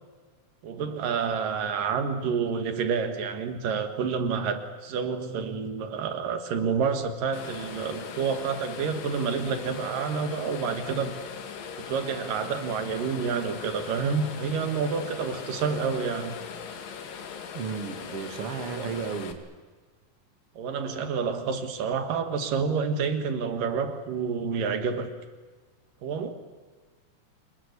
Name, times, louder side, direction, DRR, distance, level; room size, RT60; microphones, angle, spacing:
voice 1, 0.6-11.1 11.8-16.4 18.7-18.9 20.6-25.1 26.0-26.3, right 6 dB, 80° right, 9 dB, 3.4 m, -29 dB
sound 1, 7.3-19.3, left 7 dB, 85° left, 3.8 m, -40 dB
voice 2, 17.5-19.4, right 6 dB, 45° right, 7 dB, 2.8 m, -34 dB
28.0 x 21.5 x 8.3 m, 1.4 s
omnidirectional pair, 3.9 m